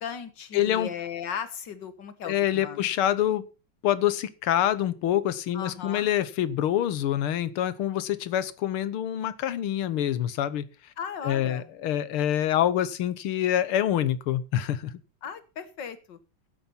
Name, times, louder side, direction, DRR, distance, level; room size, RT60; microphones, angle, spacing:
voice 1, 0.0-2.8 5.5-6.1 11.0-11.7 15.2-16.2, left 7 dB, 60° left, 12 dB, 2.1 m, -36 dB
voice 2, 0.5-0.9 2.3-3.5 3.8-10.7 11.2-14.9, left 11 dB, 90° left, 16 dB, 1.9 m, -26 dB
15.5 x 8.5 x 5.8 m, 0.34 s
omnidirectional pair, 2.3 m